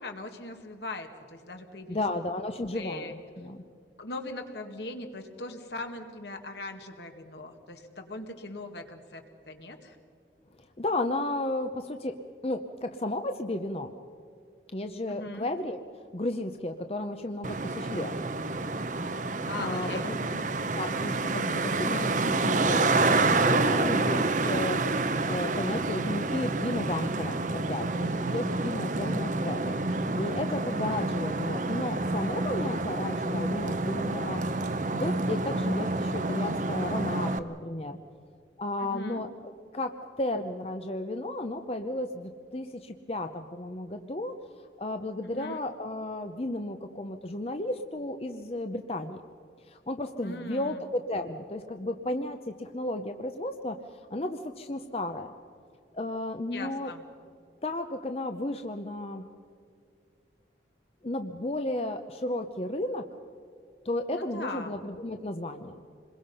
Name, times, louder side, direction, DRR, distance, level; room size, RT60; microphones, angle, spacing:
voice 1, 0.0-2.0 2.7-3.1 4.0-10.0 15.1-15.5 19.5-20.4 30.7-31.1 38.8-39.2 45.3-45.6 50.2-50.8 56.5-57.0 64.1-64.8, left 2 dB, 70° left, 4 dB, 2.1 m, -40 dB
voice 2, 1.9-3.6 10.6-13.9 14.7-15.8 16.1-18.1 19.6-20.2 20.7-29.7 30.2-34.4 34.9-38.0 38.6-39.3 39.7-44.3 44.8-49.2 49.6-55.3 55.9-56.9 57.6-59.3 61.0-63.1 63.8-65.8, left 1 dB, 35° left, 6 dB, 0.7 m, -33 dB
Traffic noise roadway noise, 17.4-37.4, right 3 dB, 45° right, 0.8 m, -28 dB
27.0 x 22.0 x 5.6 m, 2.3 s
head